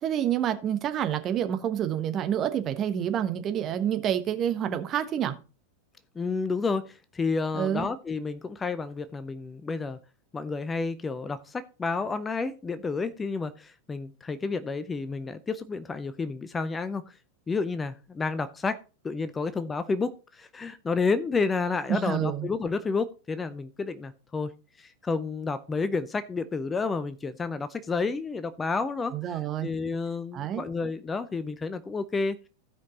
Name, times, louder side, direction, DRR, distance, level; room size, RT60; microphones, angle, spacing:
voice 1, 0.0-5.3 7.5-7.9 21.9-22.5 29.1-29.7 30.3-30.7, right 10 dB, 30° right, 1.2 m, -28 dB
voice 2, 6.2-10.0 10.3-17.1 17.5-18.8 19.0-24.5 24.8-32.4, left 4 dB, 15° left, 0.6 m, -30 dB
15.0 x 5.2 x 3.9 m
figure-of-eight pair, 90°, 0 cm